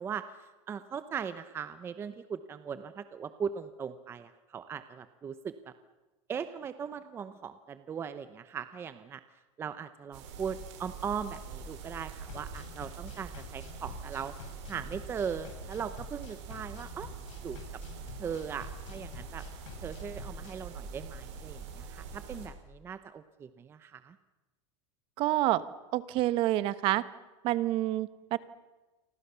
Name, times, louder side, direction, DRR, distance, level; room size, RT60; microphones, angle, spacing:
voice 1, 0.0-5.5 6.3-9.2 9.6-14.3 14.7-17.1 17.4-17.6 18.2-19.4 19.8-24.2, right 7 dB, 15° right, 12 dB, 0.8 m, -39 dB
sound 1, 10.1-22.5, right 5 dB, 70° right, 7.4 m, -44 dB
sound 2, 12.3-20.6, left 8 dB, 80° left, 6.4 m, -49 dB
voice 2, 25.2-25.6 25.9-27.0 27.4-28.4, right 15 dB, 35° right, 15 dB, 1.1 m, -28 dB
29.5 x 24.5 x 6.9 m, 1.2 s
supercardioid pair, 170°, 16 cm